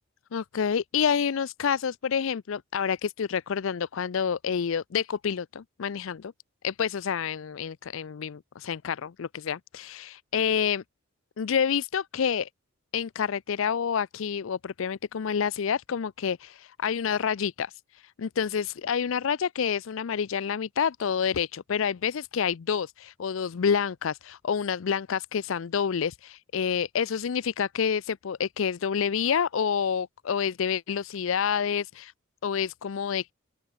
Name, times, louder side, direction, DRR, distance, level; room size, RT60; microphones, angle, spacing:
voice 1, 0.3-6.3 6.6-10.8 11.4-12.5 12.9-17.7 18.0-32.1 32.4-33.3, left 7 dB, 70° left, 0.5 m, -28 dB
open air
head